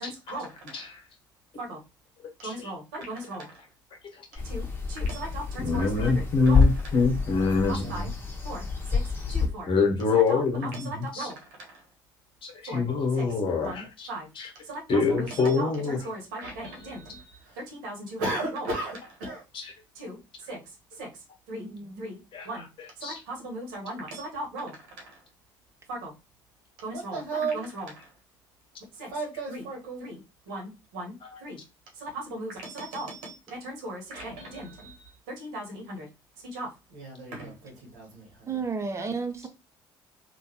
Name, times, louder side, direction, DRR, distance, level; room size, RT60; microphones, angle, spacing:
voice 1, 0.0-0.9 1.6-1.8 2.4-3.6 4.4-6.7 7.4-8.1 8.4-9.7 10.1-11.8 12.7-12.8 13.1-13.3 13.6-14.3 14.6-19.4 19.9-21.7 22.0-22.2 22.4-22.7 23.0-25.2 25.9-26.1 26.8-28.1 28.9-30.2 30.5-31.1 31.4-31.6 31.9-36.1 36.5-38.6 38.9-39.1, right 2 dB, 85° right, 1.4 m, -37 dB
sound 1, 4.3-9.5, left 5 dB, 20° left, 1.3 m, -27 dB
voice 2, 5.6-8.1 9.7-11.3 12.4-14.1 14.4-14.5 14.9-16.0 19.5-19.6 22.3-22.5 23.0-23.2, left 4 dB, 50° left, 1.4 m, -25 dB
voice 3, 21.5-22.1 38.5-39.5, right 4 dB, 25° right, 0.9 m, -32 dB
3.2 x 2.6 x 2.9 m
hypercardioid pair, 65°, 11 cm